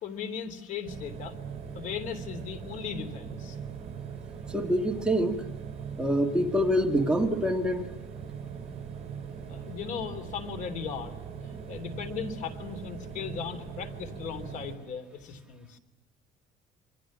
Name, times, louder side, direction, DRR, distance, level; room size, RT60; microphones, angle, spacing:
voice 1, 0.0-1.4 1.7-3.6 9.5-11.1 11.4-15.8, left 7 dB, 60° left, 10 dB, 3.3 m, -37 dB
sound 1, 0.8-14.8, right 7 dB, 45° right, 6.1 m, -41 dB
voice 2, 4.5-5.4 6.0-7.9, equal, 5° right, 2 dB, 2.2 m, -26 dB
27.5 x 25.0 x 7.5 m, 1.1 s
cardioid pair, 145°, 15 cm